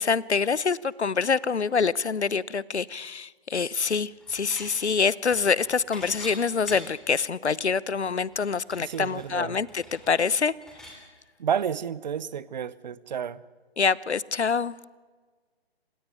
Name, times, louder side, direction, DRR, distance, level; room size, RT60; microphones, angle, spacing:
voice 1, 0.0-10.5 13.8-14.8, left 5 dB, 85° left, 0.9 m, -26 dB
Dishes pots and pans / Chink clink, 3.9-4.7 5.0-7.1 7.5-7.6 7.9-11.0, left 1 dB, ahead, 3.3 m, -45 dB
voice 2, 8.8-9.6 11.4-13.4, right 8 dB, 40° right, 0.9 m, -31 dB
26.5 x 16.0 x 9.9 m
figure-of-eight pair, 150°, 33 cm